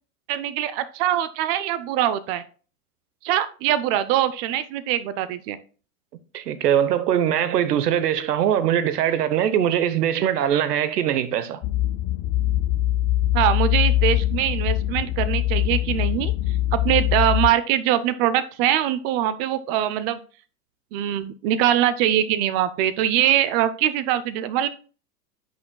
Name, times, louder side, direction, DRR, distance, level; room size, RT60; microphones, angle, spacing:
voice 1, 0.3-2.4 3.2-5.6 13.3-16.3 16.7-20.2 20.9-24.7, right 11 dB, 40° right, 0.5 m, -23 dB
voice 2, 6.3-11.6, right 10 dB, 90° right, 1.1 m, -22 dB
sound 1, 11.6-17.5, left 14 dB, 25° left, 0.4 m, -22 dB
10.0 x 6.3 x 2.3 m
supercardioid pair, 130°, 46 cm